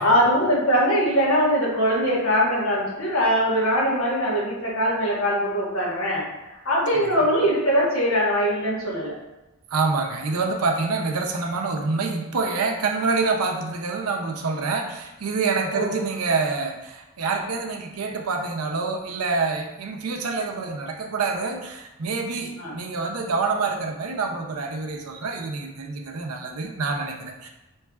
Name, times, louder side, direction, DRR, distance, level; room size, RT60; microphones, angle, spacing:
voice 1, 0.0-9.1 15.7-15.9 22.6-22.7, equal, 65° left, -5 dB, 1.3 m, -22 dB
voice 2, 9.7-27.5, right 4 dB, 85° right, 2 dB, 0.6 m, -26 dB
5.5 x 3.1 x 2.4 m, 0.99 s
head